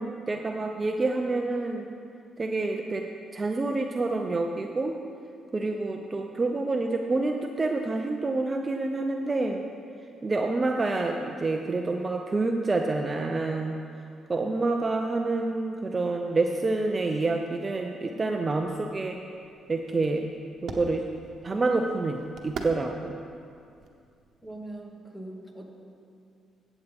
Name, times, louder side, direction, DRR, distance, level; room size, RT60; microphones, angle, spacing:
voice 1, 0.0-1.9 2.4-3.0 3.3-5.0 5.5-9.6 10.2-13.8 14.3-19.2 19.7-20.3 20.6-21.0 21.4-23.2, right 3 dB, 30° right, 3 dB, 0.6 m, -28 dB
sound 1, 18.5-24.8, right 4 dB, 65° right, 1.1 m, -44 dB
voice 2, 24.4-25.7, right 1 dB, 10° left, -1 dB, 1.8 m, -41 dB
14.5 x 8.2 x 3.6 m, 2.4 s
cardioid pair, 90°, 0 cm